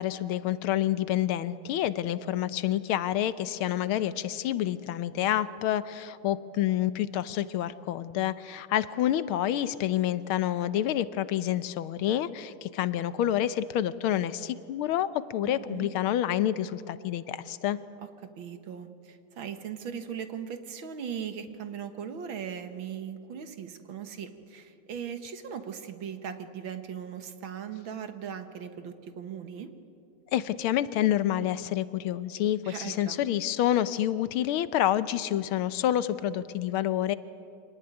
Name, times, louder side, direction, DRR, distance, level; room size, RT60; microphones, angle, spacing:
voice 1, 0.0-17.8 30.3-37.2, left 12 dB, 75° left, 15 dB, 1.6 m, -28 dB
voice 2, 15.4-15.9 18.0-29.7 32.6-33.2, right 8 dB, 65° right, 9 dB, 2.1 m, -39 dB
25.5 x 18.5 x 9.7 m, 2.6 s
omnidirectional pair, 2.4 m